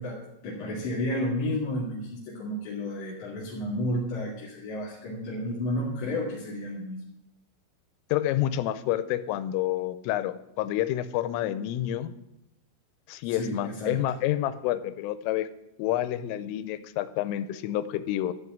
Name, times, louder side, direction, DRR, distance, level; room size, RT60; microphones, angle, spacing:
voice 1, 0.0-7.0 13.2-13.9, left 1 dB, 45° left, -8 dB, 3.2 m, -32 dB
voice 2, 8.1-12.1 13.1-15.5 15.8-18.3, left 13 dB, 90° left, 14 dB, 3.3 m, -29 dB
12.5 x 5.5 x 9.3 m, 0.83 s
omnidirectional pair, 5.7 m